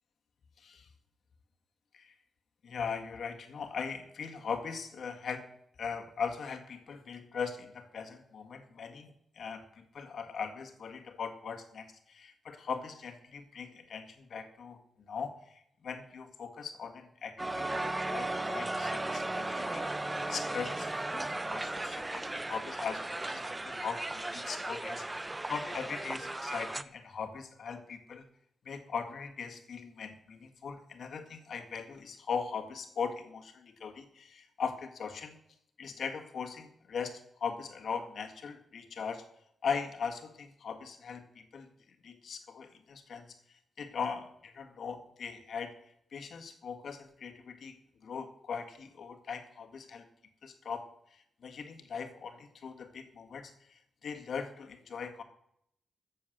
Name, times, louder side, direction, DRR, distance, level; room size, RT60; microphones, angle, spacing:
voice 1, 0.6-0.9 1.9-2.1 2.6-5.5 5.8-14.8 15.1-28.3 28.6-35.4 35.8-39.3 39.6-41.7 42.0-43.3 43.8-45.8 46.1-47.8 48.0-50.1 50.4-55.2, left 6 dB, 65° left, 5 dB, 1.8 m, -40 dB
Crowd, 17.4-26.8, right 2 dB, 15° right, 0.5 m, -36 dB
14.0 x 7.7 x 6.7 m, 0.72 s
wide cardioid pair, 130°, 0 cm